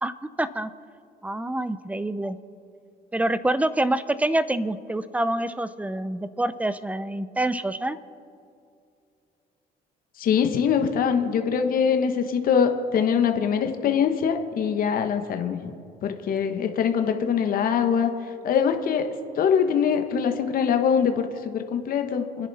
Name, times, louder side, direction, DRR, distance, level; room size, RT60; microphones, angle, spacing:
voice 1, 0.0-0.7 1.2-2.4 3.1-8.0, right 1 dB, 10° right, 14 dB, 0.6 m, -26 dB
voice 2, 10.2-15.7 16.0-18.1 18.4-19.1 19.4-22.5, left 7 dB, 60° left, 6 dB, 1.4 m, -23 dB
28.0 x 10.5 x 4.2 m, 2.5 s
cardioid pair, 110°, 17 cm